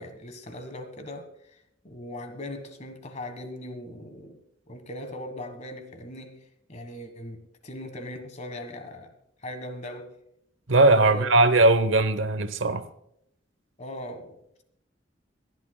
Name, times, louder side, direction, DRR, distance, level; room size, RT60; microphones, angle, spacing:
voice 1, 0.0-1.3 1.8-4.4 4.7-6.4 6.7-9.2 9.4-10.1 10.8-11.3 13.8-14.6, left 1 dB, 35° left, 1.5 m, -39 dB
voice 2, 10.7-12.9, right 2 dB, 80° right, 0.9 m, -19 dB
27.0 x 11.0 x 2.3 m
head